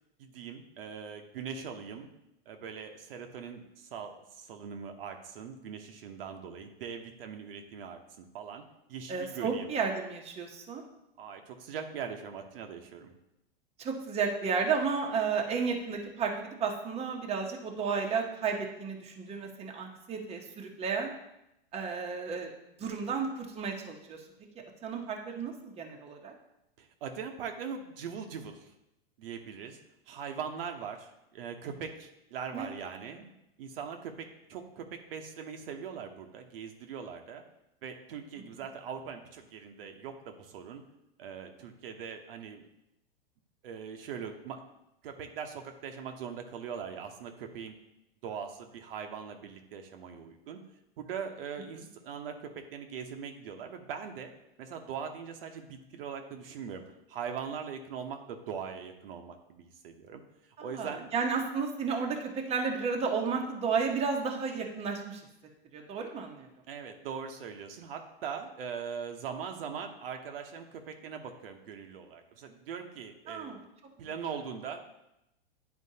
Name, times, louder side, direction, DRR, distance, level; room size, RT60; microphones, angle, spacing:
voice 1, 0.2-2.1 2.5-8.6 8.9-9.7 11.2-13.1 26.8-28.7 29.2-29.8 30.1-33.3 33.6-37.4 37.8-40.8 41.2-42.6 43.6-44.6 45.0-47.7 48.2-50.6 51.0-54.3 54.6-60.2 60.6-61.1 66.7-73.5 74.0-74.8, right 7 dB, 70° right, 5 dB, 0.9 m, -41 dB
voice 2, 9.1-10.8 13.8-21.1 21.7-22.5 22.8-24.2 24.8-26.3 32.5-32.7 51.7-51.8 60.6-65.2 65.7-66.5 73.3-73.6, right 5 dB, 20° right, 2 dB, 0.9 m, -32 dB
9.7 x 4.4 x 2.8 m, 0.86 s
hypercardioid pair, 120°, 30 cm